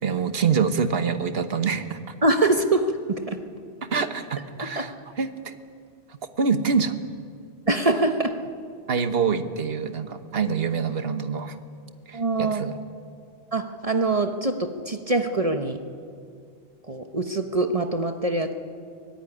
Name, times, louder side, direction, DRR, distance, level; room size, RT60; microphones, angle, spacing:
voice 1, 0.0-2.0 3.9-5.5 6.1-7.0 8.9-11.6 12.1-12.8, right 6 dB, 60° right, 10 dB, 1.4 m, -26 dB
voice 2, 2.2-3.4 4.8-4.9 7.7-8.4 12.1-12.6 13.5-15.8 16.9-18.5, right 2 dB, 35° right, 7 dB, 1.1 m, -24 dB
24.0 x 18.0 x 9.9 m, 2.3 s
omnidirectional pair, 1.1 m